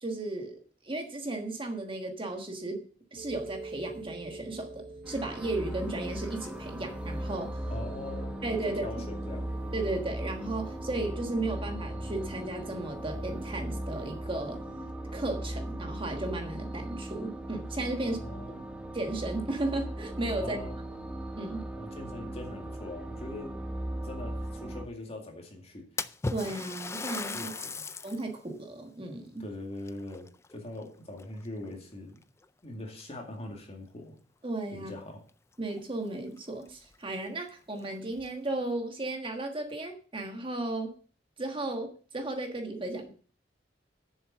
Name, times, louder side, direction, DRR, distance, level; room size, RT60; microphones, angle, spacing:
voice 1, 0.0-2.9 3.1-7.6 8.4-8.8 9.7-14.6 15.1-18.2 18.5-18.6 18.9-20.6 21.4-21.6 26.3-27.5 28.0-29.4 34.4-34.9 35.6-40.9 41.4-43.1, right 2 dB, 30° right, 4 dB, 1.4 m, -35 dB
sound 1, 3.2-14.9, right 1 dB, 80° right, 3.7 m, -48 dB
sound 2, 5.0-24.8, right 1 dB, 5° right, 1.0 m, -38 dB
voice 2, 7.7-8.3 8.8-9.5 18.0-18.7 20.4-20.7 21.8-23.5 24.0-26.0 27.3-27.8 29.4-32.2 32.6-34.2 34.7-35.2, left 1 dB, 35° left, 2 dB, 2.2 m, -42 dB
Splash splatter, 26.0-28.3 28.8-28.9 29.8-30.8 31.2-31.6 32.4-32.5 33.0-33.1 35.3-35.4 35.7-35.8 36.4-36.5 36.9-37.0 37.7-38.3, left 3 dB, 15° left, 0.4 m, -37 dB
7.2 x 7.2 x 7.5 m, 0.43 s
head